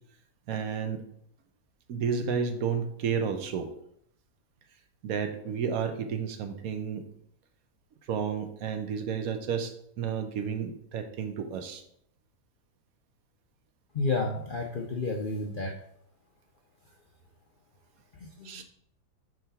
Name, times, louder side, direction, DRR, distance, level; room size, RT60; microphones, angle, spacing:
voice 1, 0.5-1.0 1.9-3.7 5.0-7.1 8.0-11.8 18.4-18.6, right 6 dB, 65° right, 7 dB, 1.1 m, -31 dB
voice 2, 13.9-15.7 18.2-18.6, left 3 dB, 70° left, 1 dB, 0.4 m, -31 dB
4.6 x 3.8 x 5.5 m, 0.69 s
omnidirectional pair, 1.7 m